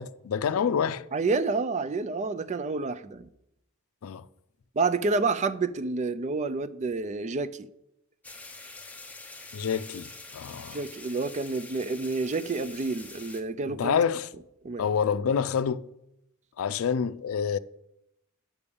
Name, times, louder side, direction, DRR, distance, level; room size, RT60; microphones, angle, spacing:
voice 1, 0.0-1.0 4.0-4.2 9.5-10.8 13.7-14.3 14.8-15.9 16.6-17.6, left 7 dB, 85° left, 0.4 m, -27 dB
voice 2, 1.1-3.3 4.8-7.7 10.7-14.0 14.6-14.8, right 3 dB, 35° right, 0.4 m, -29 dB
sound 1, 8.2-13.4, left 3 dB, 5° left, 0.7 m, -45 dB
6.8 x 5.9 x 6.9 m
head